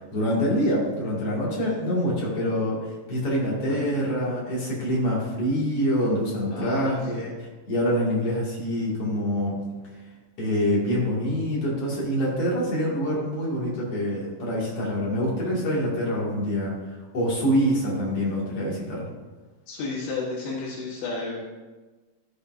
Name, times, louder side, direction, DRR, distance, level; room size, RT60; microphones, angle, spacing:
voice 1, 0.1-2.8 3.1-9.6 10.4-16.7 17.1-19.1, equal, 40° left, -5 dB, 2.6 m, -25 dB
voice 2, 6.5-7.3 19.7-21.4, left 3 dB, 85° left, -8 dB, 3.6 m, -32 dB
14.0 x 6.8 x 2.6 m, 1.3 s
omnidirectional pair, 4.9 m